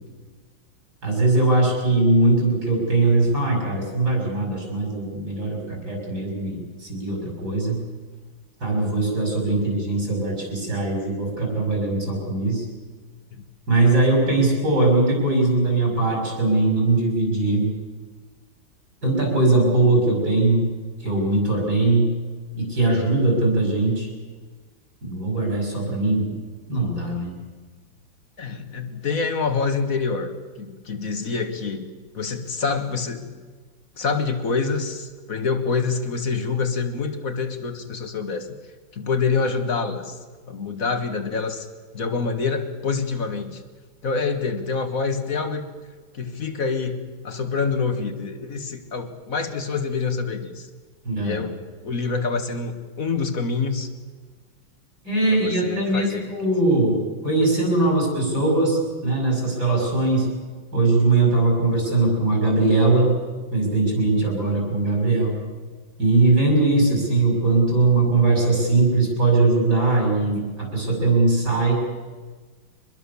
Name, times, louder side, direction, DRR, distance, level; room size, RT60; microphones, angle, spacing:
voice 1, 1.0-7.8 8.6-12.7 13.7-17.7 19.0-20.7 21.0-22.1 22.5-24.1 25.0-26.4 26.7-27.3 51.0-51.4 55.0-60.3 60.7-63.2 63.5-65.4 66.0-71.7, right 2 dB, 55° right, 1 dB, 7.5 m, -20 dB
voice 2, 28.4-30.3 30.6-31.9 32.1-33.4 34.0-38.5 38.9-40.2 40.5-41.7 41.9-43.6 44.0-45.6 46.1-50.7 51.2-53.9 55.3-56.2, left 4 dB, 45° left, 8 dB, 1.9 m, -26 dB
24.5 x 21.0 x 7.1 m, 1.4 s
omnidirectional pair, 2.1 m